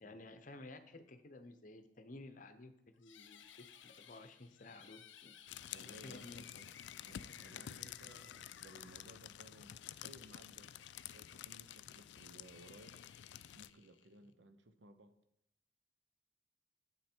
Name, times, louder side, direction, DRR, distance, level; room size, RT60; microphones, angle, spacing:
voice 1, 0.0-5.3 5.8-6.5, left 2 dB, 45° left, 9 dB, 0.8 m, -54 dB
sound 1, 3.0-14.3, left 8 dB, 85° left, 0.7 m, -60 dB
sound 2, 5.5-13.7, left 11 dB, 65° left, 0.3 m, -51 dB
voice 2, 5.7-6.7 7.0-10.7 11.1-13.0 13.5-15.2, right 1 dB, 70° right, 9 dB, 0.8 m, -59 dB
9.5 x 7.7 x 4.5 m, 0.77 s
head